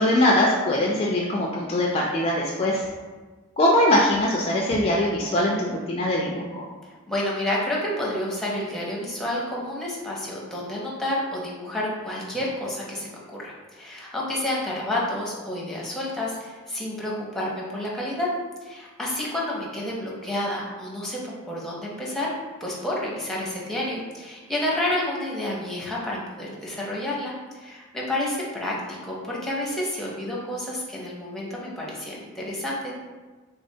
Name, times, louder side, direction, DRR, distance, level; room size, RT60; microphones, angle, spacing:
voice 1, 0.0-2.8 3.6-6.6, left 1 dB, 30° left, -2 dB, 0.3 m, -22 dB
voice 2, 7.1-18.3 18.6-22.3 22.6-32.9, left 1 dB, ahead, -5 dB, 0.6 m, -30 dB
3.4 x 3.2 x 2.7 m, 1.3 s
head